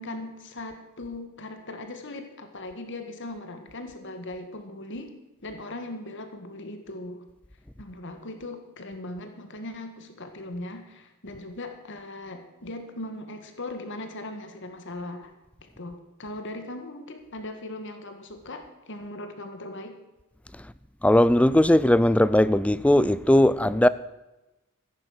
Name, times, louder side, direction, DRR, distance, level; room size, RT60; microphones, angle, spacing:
voice 1, 0.0-5.1 5.4-7.3 7.8-15.3 15.8-20.0, left 2 dB, 55° left, 1.7 m, -39 dB
voice 2, 21.0-23.9, left 1 dB, 5° left, 0.4 m, -19 dB
15.0 x 10.5 x 6.6 m
head